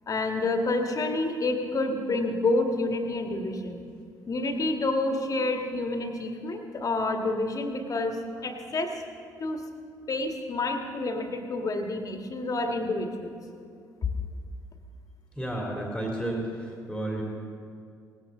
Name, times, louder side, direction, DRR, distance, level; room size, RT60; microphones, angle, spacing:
voice 1, 0.1-3.8 4.3-9.0 9.4-9.6 10.1-13.4, left 2 dB, 35° left, 4 dB, 1.8 m, -28 dB
voice 2, 15.4-16.5 16.9-17.2, right 1 dB, 5° right, -2 dB, 3.0 m, -31 dB
19.5 x 16.0 x 3.8 m, 2.3 s
figure-of-eight pair, 50°, 10 cm